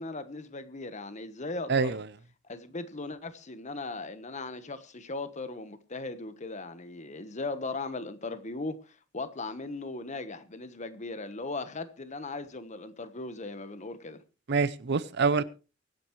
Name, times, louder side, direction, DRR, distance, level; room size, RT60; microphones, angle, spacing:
voice 1, 0.0-2.0 2.4-14.2, left 3 dB, 35° left, 1.2 m, -38 dB
voice 2, 1.7-2.0 14.5-15.4, right 4 dB, 60° right, 0.6 m, -26 dB
23.5 x 9.2 x 3.2 m
head